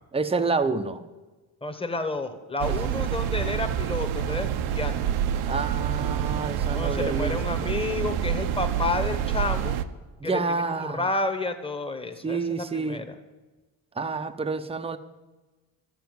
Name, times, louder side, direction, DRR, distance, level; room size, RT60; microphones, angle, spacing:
voice 1, 0.1-1.0 5.5-7.7 10.2-11.0 12.2-13.0 14.0-15.0, right 4 dB, 10° right, 9 dB, 0.7 m, -28 dB
voice 2, 1.6-5.2 6.7-9.8 10.2-13.2, left 2 dB, 10° left, 7 dB, 1.2 m, -30 dB
sound 1, 2.6-9.8, right 9 dB, 80° right, 0.9 m, -27 dB
13.0 x 7.0 x 9.3 m, 1.2 s
cardioid pair, 125°, 49 cm